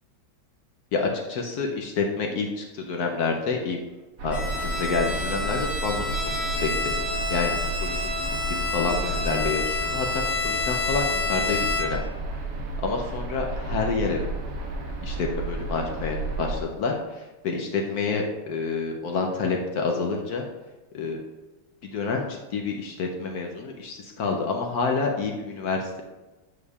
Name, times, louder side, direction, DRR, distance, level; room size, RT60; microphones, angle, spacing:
voice 1, 0.9-3.8 4.2-6.2 6.5-8.1 8.5-12.0 12.8-14.2 15.0-20.4 20.9-21.2 21.8-26.0, left 4 dB, 70° left, 2 dB, 0.9 m, -28 dB
sound 1, 4.2-16.6, right 2 dB, 55° right, 1.1 m, -32 dB
Bowed string instrument, 4.3-12.1, left 3 dB, 85° left, 1.7 m, -29 dB
8.1 x 5.0 x 2.3 m, 1.1 s
omnidirectional pair, 2.1 m